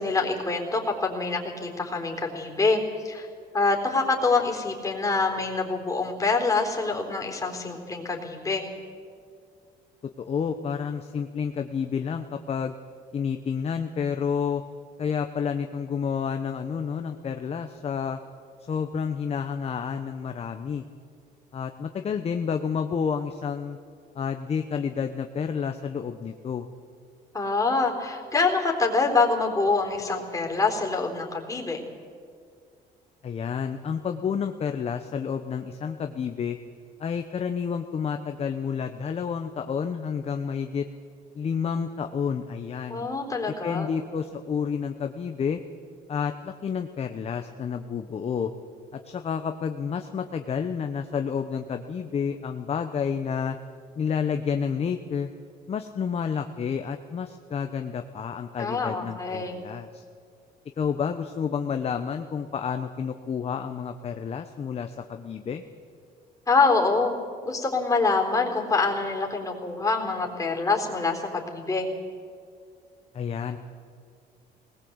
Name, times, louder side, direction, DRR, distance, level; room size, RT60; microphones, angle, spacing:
voice 1, 0.0-3.3 3.5-8.6 27.3-31.8 42.9-43.9 58.6-59.6 66.5-67.1 67.4-71.9, left 3 dB, 20° left, 1 dB, 3.9 m, -25 dB
voice 2, 10.2-12.7 13.1-14.6 15.0-18.2 18.7-20.8 21.5-23.8 24.1-26.7 33.2-36.6 37.0-40.9 41.4-43.1 43.6-45.6 46.1-48.5 48.9-53.6 54.0-55.3 55.7-60.0 60.8-65.6 73.1-73.6, left 6 dB, 35° left, 7 dB, 1.0 m, -30 dB
20.0 x 19.5 x 8.1 m, 2.2 s
cardioid pair, 110°, 17 cm